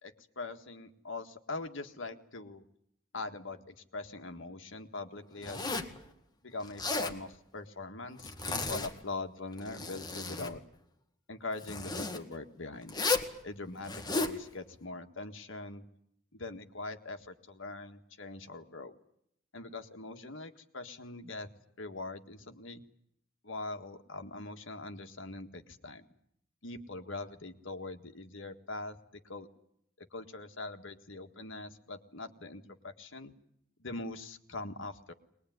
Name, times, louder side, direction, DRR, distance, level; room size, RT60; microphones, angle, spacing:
voice 1, 0.0-2.6 3.1-5.8 6.4-10.6 11.3-13.1 13.4-13.9 14.2-15.8 16.3-18.9 19.5-21.5 21.8-22.8 23.4-26.0 26.6-29.5 30.0-33.3 33.8-35.1, left 2 dB, 65° left, 6 dB, 1.8 m, -42 dB
Zipper (clothing), 5.4-6.0 6.6-7.2 8.2-8.9 9.5-10.5 11.6-12.2 12.9-13.3 13.8-14.4, left 3 dB, 20° left, 1.9 m, -34 dB
22.0 x 21.0 x 9.5 m, 0.72 s
head